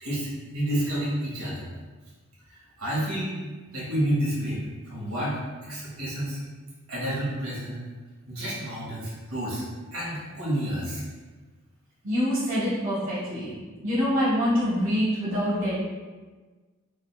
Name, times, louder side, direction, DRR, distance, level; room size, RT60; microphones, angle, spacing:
voice 1, 0.0-1.7 2.5-3.4 3.7-4.6 4.9-6.4 6.9-7.8 8.3-9.6 9.9-11.0, right 1 dB, 90° right, -7 dB, 1.4 m, -30 dB
voice 2, 12.0-13.5 13.8-15.7, equal, 65° right, -10 dB, 1.1 m, -25 dB
5.1 x 2.4 x 2.2 m, 1.3 s
head